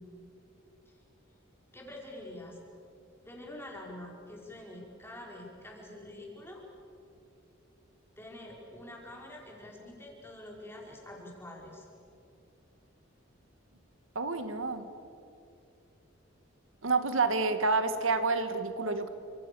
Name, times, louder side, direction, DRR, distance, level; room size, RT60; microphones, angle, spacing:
voice 1, 1.7-2.6 3.2-6.6 8.2-11.9, left 1 dB, 10° left, -2 dB, 5.2 m, -46 dB
voice 2, 14.2-14.8 16.8-19.1, right 3 dB, 80° right, 9 dB, 1.8 m, -28 dB
30.0 x 27.0 x 7.0 m, 2.6 s
head